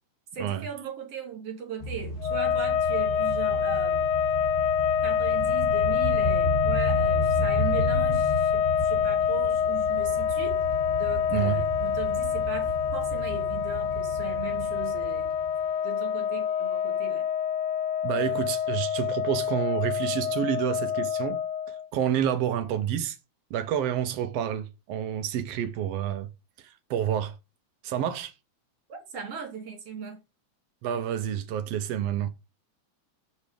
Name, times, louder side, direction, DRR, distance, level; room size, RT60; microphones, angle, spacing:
voice 1, 0.3-4.0 5.0-10.6 11.0-15.3 15.8-17.3 29.1-30.2, right 5 dB, 55° right, 3.4 m, -38 dB
sound 1, 1.8-15.6, equal, 60° left, 3.7 m, -33 dB
sound 2, 2.2-21.8, left 8 dB, 85° left, 2.1 m, -26 dB
voice 2, 11.3-11.6 18.0-21.4 21.7-23.2 23.5-26.3 26.6-27.3 27.8-28.3 30.8-32.3, right 10 dB, 75° right, 1.5 m, -29 dB
6.6 x 5.2 x 5.0 m
omnidirectional pair, 3.4 m